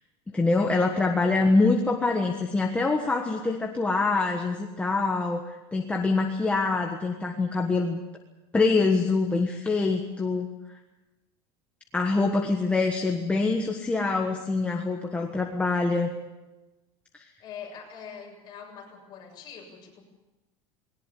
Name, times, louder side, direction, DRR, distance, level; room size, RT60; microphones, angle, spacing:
voice 1, 0.3-8.0 8.5-10.5 11.9-16.1, left 3 dB, 10° left, 1 dB, 1.4 m, -25 dB
voice 2, 17.4-20.0, left 7 dB, 30° left, 0 dB, 7.2 m, -43 dB
20.5 x 19.0 x 8.3 m, 1.1 s
cardioid pair, 170°, 15 cm